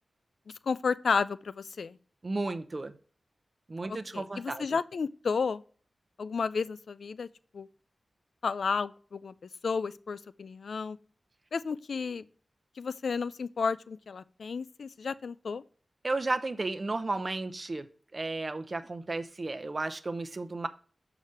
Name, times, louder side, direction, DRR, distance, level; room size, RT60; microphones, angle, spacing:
voice 1, 0.6-2.0 3.9-5.6 6.2-7.3 7.5-7.7 8.4-9.3 9.6-11.0 11.5-12.2 12.8-15.6, left 5 dB, 80° left, 0.3 m, -32 dB
voice 2, 2.2-2.9 3.7-4.7 16.0-17.9 18.1-20.7, right 2 dB, 40° right, 0.6 m, -33 dB
6.5 x 4.9 x 5.5 m
wide cardioid pair, 80°, 0 cm